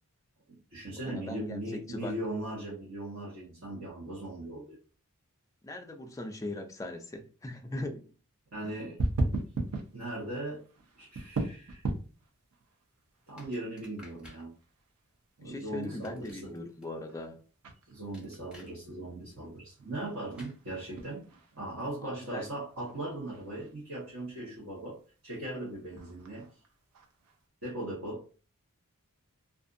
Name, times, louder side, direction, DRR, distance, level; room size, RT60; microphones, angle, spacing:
voice 1, 0.5-4.8 8.5-9.0 9.9-10.6 11.0-11.8 13.3-14.5 15.4-16.5 17.9-21.3 21.5-26.5 27.6-28.2, right 1 dB, 60° right, 1.1 m, -39 dB
voice 2, 1.0-2.1 5.6-8.1 15.4-17.4 22.0-22.5, left 1 dB, 15° left, 0.3 m, -40 dB
sound 1, 9.0-27.5, right 2 dB, 90° right, 0.6 m, -40 dB
sound 2, 13.4-14.5 15.8-16.8 18.1-18.7 20.4-20.6, left 1 dB, 5° right, 0.8 m, -54 dB
2.5 x 2.4 x 2.5 m
head